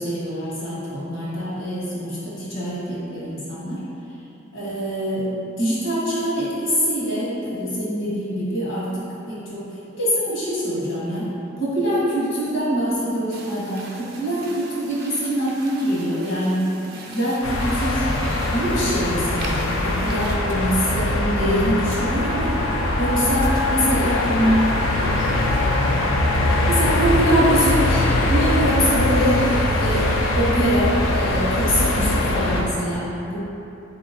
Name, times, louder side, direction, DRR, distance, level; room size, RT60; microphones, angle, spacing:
voice 1, 0.0-3.8 4.5-5.3 5.6-8.9 9.3-9.7 10.0-11.3 11.6-16.6 17.1-18.0 18.5-22.5 23.0-24.7 26.7-30.1 30.3-33.4, equal, 75° left, -9 dB, 1.5 m, -24 dB
sound 1, 13.3-20.4, right 3 dB, 50° right, 0.5 m, -40 dB
sound 2, 17.4-32.6, left 1 dB, 90° left, 0.5 m, -22 dB
Wind instrument woodwind instrument, 22.0-27.2, left 4 dB, 60° left, 0.7 m, -32 dB
voice 2, 23.9-25.5 26.2-27.5, equal, 20° left, -7 dB, 0.5 m, -36 dB
3.7 x 2.9 x 4.0 m, 2.9 s
head